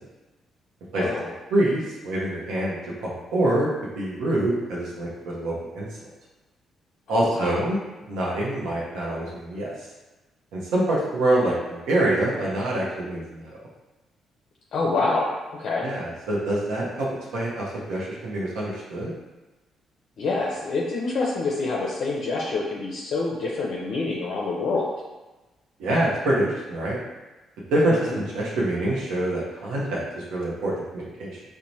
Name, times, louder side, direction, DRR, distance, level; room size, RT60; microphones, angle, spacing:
voice 1, 0.9-1.2 7.1-7.6 14.7-15.3 15.6-15.9 20.2-24.9 27.9-28.2, left 3 dB, 65° left, -4 dB, 0.4 m, -26 dB
voice 2, 1.5-3.7 3.9-6.1 7.1-7.8 8.1-9.7 10.5-13.6 15.8-17.1 17.3-19.1 25.8-27.0 27.7-31.4, right 1 dB, 90° right, -5 dB, 0.6 m, -25 dB
3.0 x 2.0 x 2.6 m, 1.1 s
cardioid pair, 90°, 0 cm